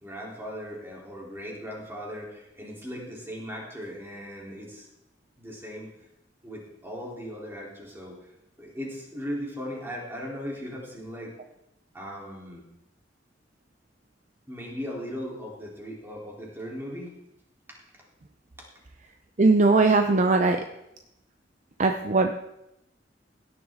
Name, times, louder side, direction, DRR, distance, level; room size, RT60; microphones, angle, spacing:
voice 1, 0.0-4.9 5.4-5.9 6.4-8.3 8.6-11.3 11.9-12.6 14.5-17.2 17.7-17.8 18.6-18.7, equal, 15° right, -3 dB, 3.5 m, -38 dB
voice 2, 19.4-20.6 21.8-22.3, right 3 dB, 45° right, 5 dB, 0.7 m, -20 dB
17.0 x 10.5 x 3.8 m, 0.84 s
head